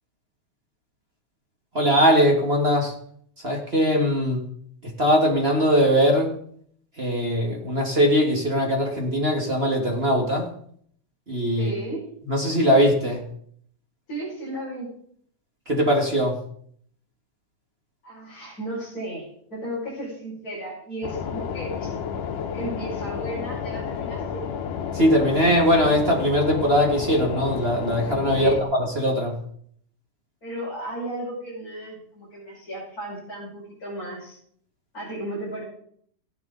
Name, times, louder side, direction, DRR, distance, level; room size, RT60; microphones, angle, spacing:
voice 1, 1.7-2.9 3.4-4.4 4.8-6.3 7.0-10.5 11.3-11.7 12.2-13.2 15.7-16.4 24.9-29.4, equal, 25° right, 0 dB, 1.3 m, -21 dB
voice 2, 11.5-12.1 14.1-14.9 18.0-21.9 22.5-24.4 28.4-28.6 30.4-34.4 34.9-35.6, right 1 dB, 25° left, -10 dB, 6.3 m, -34 dB
sound 1, 21.0-28.6, left 7 dB, 75° left, 2.5 m, -31 dB
16.0 x 10.5 x 4.0 m, 0.64 s
omnidirectional pair, 3.8 m